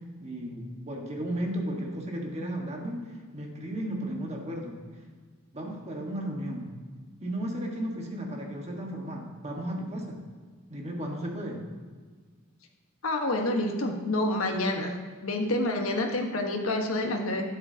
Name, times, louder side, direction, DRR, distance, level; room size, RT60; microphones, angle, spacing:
voice 1, 0.2-4.8 5.5-6.7 7.2-10.2 10.7-11.6, right 1 dB, 30° right, 0 dB, 1.5 m, -34 dB
voice 2, 13.0-14.9 15.2-17.4, left 1 dB, 65° left, 2 dB, 1.3 m, -28 dB
12.5 x 9.7 x 2.8 m, 1.5 s
head